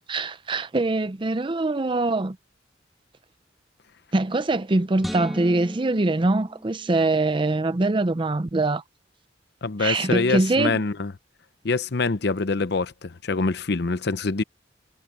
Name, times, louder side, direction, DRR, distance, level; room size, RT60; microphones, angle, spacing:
voice 1, 0.1-2.4 4.1-8.8 9.8-10.8, right 2 dB, 30° right, 0.6 m, -23 dB
sound 1, 5.0-7.4, equal, ahead, 1.5 m, -37 dB
voice 2, 9.6-11.1 11.6-14.4, left 3 dB, 65° left, 0.7 m, -25 dB
head